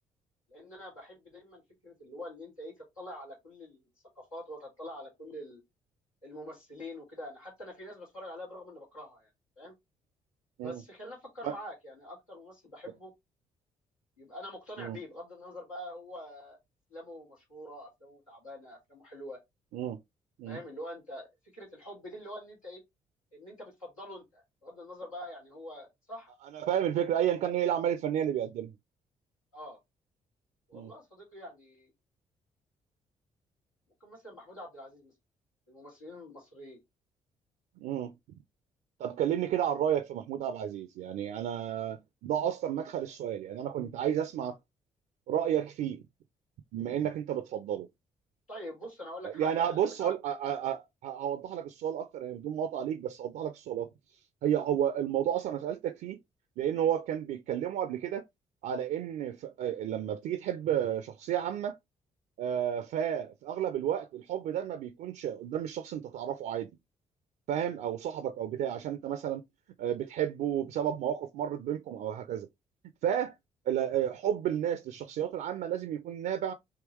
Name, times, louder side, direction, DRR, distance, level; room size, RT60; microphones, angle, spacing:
voice 1, 0.5-3.8 4.1-5.6 6.2-9.3 9.6-9.7 10.6-13.1 14.2-16.6 16.9-19.4 20.4-21.3 21.5-22.8 23.3-26.3 29.5-29.8 30.7-31.9 34.0-35.1 35.7-36.8 48.5-50.1, left 1 dB, 90° left, 1.4 m, -45 dB
voice 2, 26.5-28.7 30.7-30.9 37.8-38.1 39.0-44.6 45.3-46.0 46.7-47.9 49.2-53.9 54.4-56.2 56.6-58.2 58.6-61.8 62.4-66.7 67.5-69.4 69.8-72.5 73.0-73.3 73.7-76.5, right 10 dB, 55° right, 0.4 m, -31 dB
3.6 x 2.8 x 3.0 m
figure-of-eight pair, 40°, 17 cm